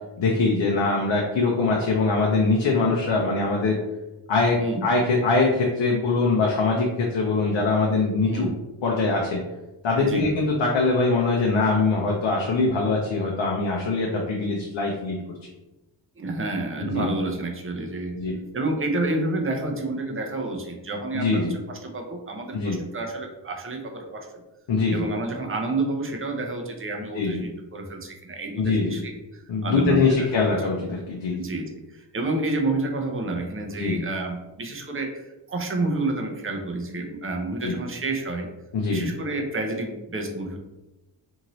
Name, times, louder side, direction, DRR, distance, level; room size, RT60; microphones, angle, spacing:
voice 1, 0.2-3.8 4.3-8.5 8.8-9.4 9.8-15.2 16.8-17.1 18.1-18.4 21.1-21.5 22.5-22.8 24.7-25.1 27.1-27.4 28.6-29.0 29.5-31.4 33.8-34.0 37.6-37.8 38.7-39.1, left 3 dB, 65° left, -1 dB, 0.6 m, -23 dB
voice 2, 8.2-8.6 10.0-10.3 16.2-18.2 18.5-24.3 24.9-30.5 31.3-38.5 38.9-40.6, right 2 dB, 30° right, 2 dB, 0.6 m, -29 dB
2.7 x 2.6 x 3.0 m, 1.0 s
cardioid pair, 80°, 47 cm